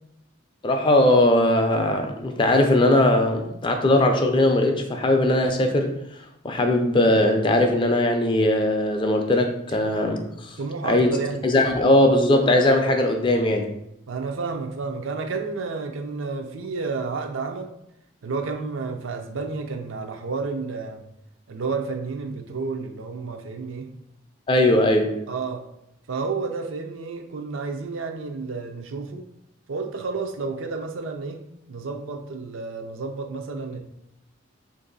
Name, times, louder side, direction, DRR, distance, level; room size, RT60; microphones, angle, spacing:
voice 1, 0.6-10.6 10.8-11.1 11.4-13.7 24.5-25.2, left 1 dB, 25° left, 5 dB, 0.4 m, -20 dB
voice 2, 10.6-11.4 14.1-17.7 18.2-21.0 21.5-23.9 25.3-25.6 26.1-29.2 29.7-31.4 31.7-33.8, right 4 dB, 80° right, 5 dB, 0.5 m, -31 dB
3.0 x 2.6 x 3.9 m, 0.81 s
head